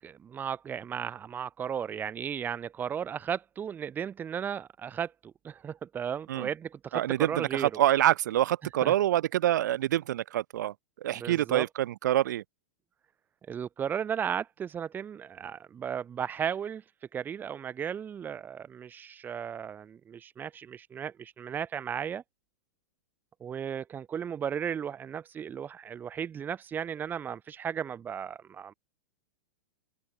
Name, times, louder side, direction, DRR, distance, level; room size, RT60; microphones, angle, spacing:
voice 1, 0.0-7.7 8.8-8.9 11.1-11.7 13.5-16.8 17.1-22.2 23.4-28.7, right 8 dB, 20° right, 1.2 m, -35 dB
voice 2, 6.9-10.7 11.0-12.4, right 13 dB, 70° right, 0.7 m, -26 dB
open air
hypercardioid pair, 135°, 10 cm